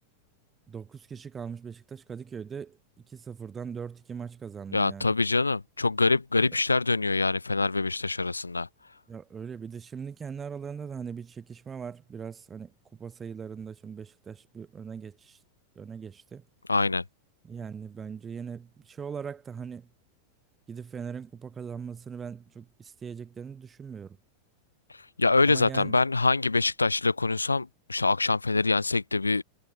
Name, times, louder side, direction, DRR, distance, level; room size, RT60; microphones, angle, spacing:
voice 1, 0.7-2.8 3.1-5.1 9.1-15.4 15.7-16.4 17.4-19.9 20.7-24.2 25.4-26.0, right 6 dB, 20° right, 3.0 m, -40 dB
voice 2, 4.7-8.7 16.7-17.0 24.9-29.4, left 3 dB, 85° left, 0.6 m, -25 dB
figure-of-eight pair, 90°, 0 cm